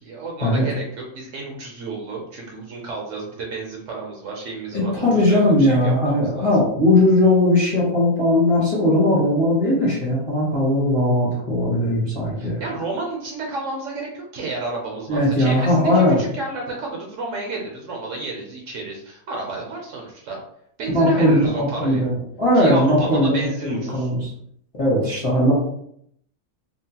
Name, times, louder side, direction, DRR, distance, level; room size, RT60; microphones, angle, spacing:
voice 1, 0.0-6.6 12.4-20.4 20.8-22.0 22.5-24.1, right 3 dB, 65° right, 0 dB, 0.9 m, -31 dB
voice 2, 4.7-12.6 15.1-16.2 20.9-24.3 24.8-25.5, left 1 dB, 30° left, -7 dB, 0.6 m, -19 dB
2.9 x 2.1 x 2.8 m, 0.70 s
omnidirectional pair, 1.6 m